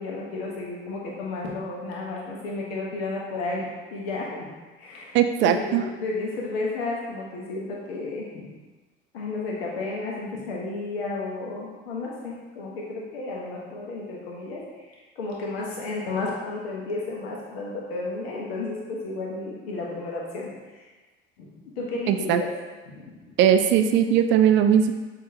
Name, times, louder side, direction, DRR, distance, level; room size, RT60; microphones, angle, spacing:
voice 1, 0.0-4.5 4.8-8.6 9.1-20.9 21.4-22.5 22.9-23.3, left 3 dB, 65° left, -3 dB, 1.1 m, -33 dB
voice 2, 5.1-5.9 22.1-22.4 23.4-24.9, right 9 dB, 35° right, 8 dB, 0.4 m, -19 dB
6.4 x 2.9 x 2.7 m, 1.3 s
figure-of-eight pair, 65°, 32 cm